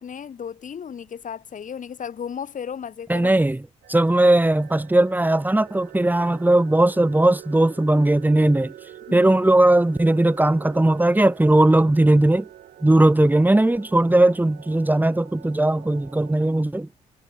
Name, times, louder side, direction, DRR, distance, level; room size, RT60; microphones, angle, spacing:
voice 1, 0.0-3.3 9.1-9.3, left 7 dB, 55° left, 4.8 m, -34 dB
voice 2, 3.1-8.7 9.1-12.5 12.8-16.9, right 1 dB, 10° right, 1.2 m, -18 dB
sound 1, 3.8-16.3, right 12 dB, 70° right, 3.4 m, -45 dB
hypercardioid pair, 45°, 16 cm